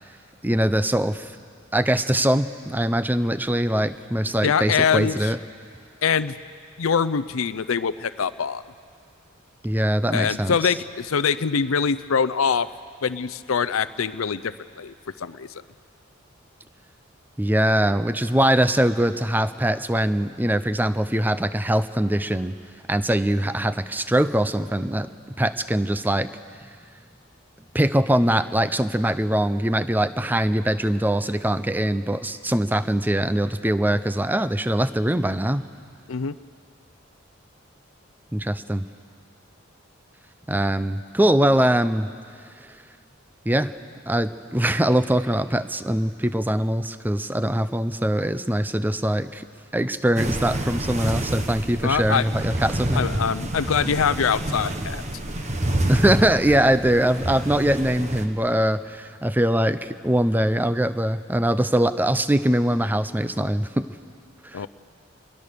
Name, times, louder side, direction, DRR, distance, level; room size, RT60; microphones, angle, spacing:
voice 1, 0.4-1.3 1.7-5.4 9.6-10.7 17.4-22.5 22.9-25.1 25.4-26.3 27.7-35.7 38.3-38.9 40.5-42.1 43.5-43.7 44.1-49.5 49.7-53.0 55.9-63.9 64.4-64.7, right 1 dB, 10° right, 12 dB, 0.5 m, -22 dB
voice 2, 4.4-5.3 6.0-6.3 6.8-8.6 10.1-12.7 13.0-15.5 36.1-36.3 51.8-52.3 52.9-55.0 64.5-64.7, left 6 dB, 80° left, 14 dB, 0.6 m, -24 dB
sound 1, 50.2-58.3, right 1 dB, 35° right, 1.3 m, -28 dB
26.5 x 21.5 x 6.8 m, 2.2 s
head